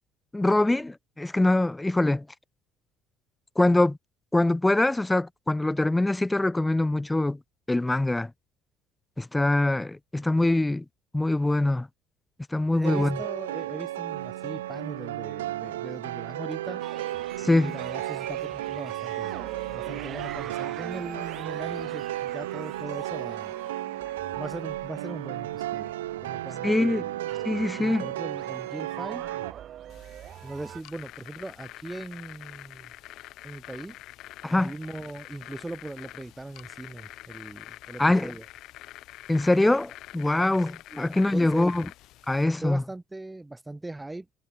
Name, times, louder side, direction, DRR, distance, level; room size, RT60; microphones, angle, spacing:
voice 1, 0.3-2.3 3.6-4.0 4.3-7.4 7.7-8.3 9.2-10.8 11.1-11.9 12.5-13.2 17.4-17.8 26.6-27.0 27.5-28.1 34.4-34.7 38.0-38.4 39.3-41.9 42.3-42.8, left 2 dB, 10° left, 0.4 m, -23 dB
voice 2, 12.7-16.8 17.4-19.3 19.7-23.5 24.4-25.9 26.2-27.2 27.8-29.2 30.4-32.9 33.4-34.0 34.6-38.5 40.9-41.7 42.6-44.3, right 2 dB, 15° right, 3.8 m, -39 dB
sound 1, 12.8-29.5, right 14 dB, 85° right, 2.6 m, -34 dB
sound 2, 16.8-30.8, right 11 dB, 55° right, 1.5 m, -43 dB
sound 3, 29.9-42.4, left 15 dB, 65° left, 6.1 m, -46 dB
hypercardioid pair, 65°, 0 cm